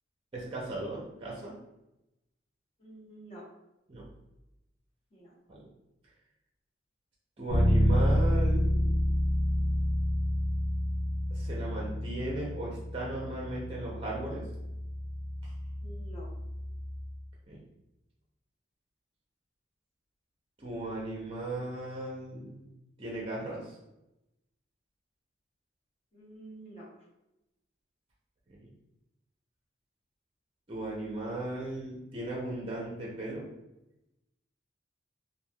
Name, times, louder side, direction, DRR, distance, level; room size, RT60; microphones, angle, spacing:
voice 1, 0.3-1.5 3.9-4.1 5.5-5.6 7.4-8.7 11.3-14.5 15.4-15.5 17.5-17.6 20.6-22.7 23.0-23.7 28.5-28.7 30.7-33.5, right 2 dB, 30° right, -3 dB, 0.5 m, -37 dB
voice 2, 2.8-3.4 5.1-5.3 15.8-16.3 26.1-26.9, right 1 dB, 30° left, -6 dB, 1.0 m, -48 dB
Bass guitar, 7.5-17.3, equal, 85° left, 0.8 m, -29 dB
3.2 x 2.5 x 2.2 m, 0.92 s
head